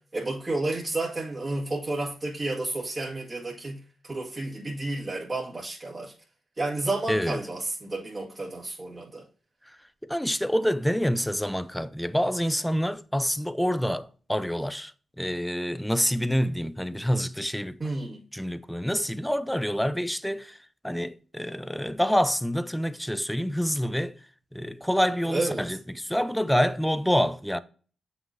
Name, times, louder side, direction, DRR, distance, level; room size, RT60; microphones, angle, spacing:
voice 1, 0.0-6.1 6.6-9.2 17.8-18.2 25.3-25.6, right 2 dB, 35° right, 2.0 m, -31 dB
voice 2, 7.1-7.4 10.1-14.9 15.2-17.8 18.3-20.6 20.8-24.2 24.5-27.6, equal, 5° left, 0.6 m, -27 dB
7.4 x 6.0 x 2.7 m
cardioid pair, 60°, 0 cm